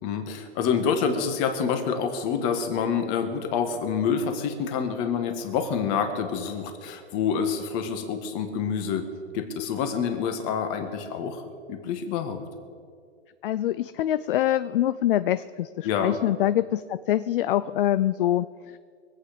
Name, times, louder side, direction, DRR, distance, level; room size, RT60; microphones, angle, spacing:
voice 1, 0.0-9.1 9.3-12.4 15.8-16.2, left 6 dB, 30° left, 6 dB, 1.6 m, -27 dB
voice 2, 13.4-18.8, left 12 dB, 50° left, 14 dB, 0.4 m, -25 dB
24.0 x 8.6 x 5.1 m, 2.1 s
hypercardioid pair, 160°, 34 cm